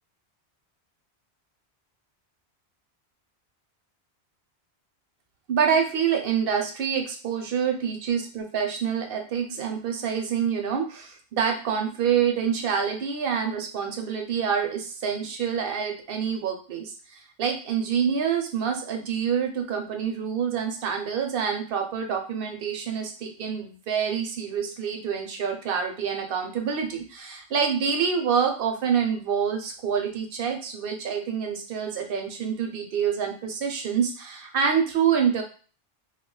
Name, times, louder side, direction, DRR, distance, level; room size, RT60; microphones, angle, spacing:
voice 1, 5.5-35.4, right 7 dB, 65° right, 4 dB, 0.7 m, -27 dB
2.3 x 2.2 x 3.7 m, 0.39 s
omnidirectional pair, 1.1 m